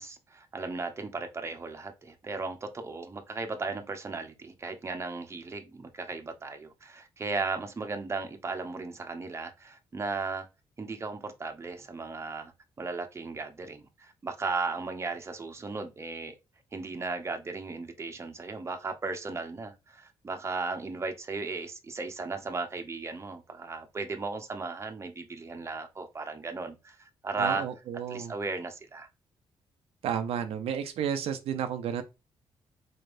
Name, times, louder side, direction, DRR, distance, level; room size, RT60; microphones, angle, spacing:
voice 1, 0.0-10.5 10.8-12.5 12.8-16.3 16.7-27.6 28.1-29.1, right 3 dB, 30° right, 0.7 m, -36 dB
voice 2, 27.4-28.3 30.0-32.0, right 8 dB, 85° right, 0.5 m, -32 dB
4.2 x 3.3 x 2.5 m
cardioid pair, 100°, 10 cm